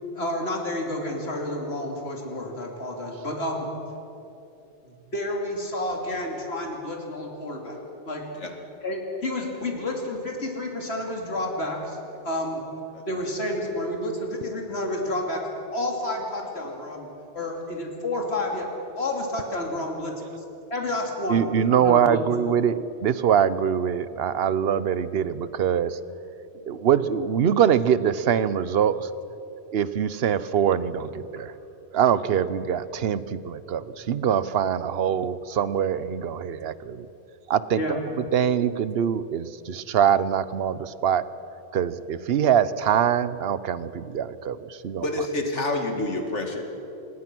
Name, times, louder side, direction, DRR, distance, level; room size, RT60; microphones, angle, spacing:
voice 1, 0.1-3.7 4.8-7.8 8.0-8.3 8.8-12.0 12.2-12.6 13.1-17.1 17.3-18.7 19.0-20.2 20.7-21.5 21.8-22.2 37.7-38.0, left 1 dB, 65° left, 1 dB, 3.1 m, -30 dB
voice 2, 21.3-26.0 26.7-29.1 29.7-31.5 31.9-37.1 37.5-38.0 38.3-41.2 41.7-44.6 44.8-45.0, right 8 dB, 60° right, 15 dB, 1.0 m, -23 dB
voice 3, 45.0-46.6, left 2 dB, 85° left, 3 dB, 2.6 m, -28 dB
26.5 x 21.0 x 6.1 m, 2.9 s
omnidirectional pair, 1.2 m